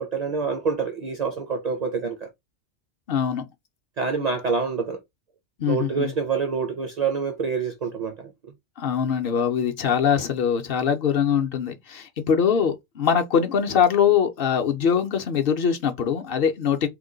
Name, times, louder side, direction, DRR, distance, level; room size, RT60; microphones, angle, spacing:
voice 1, 0.0-2.3 4.0-5.0 5.7-8.5, right 5 dB, 55° right, 0.5 m, -27 dB
voice 2, 3.1-3.5 5.6-6.1 8.8-16.9, left 7 dB, 60° left, 0.7 m, -22 dB
2.9 x 2.1 x 3.8 m
omnidirectional pair, 1.2 m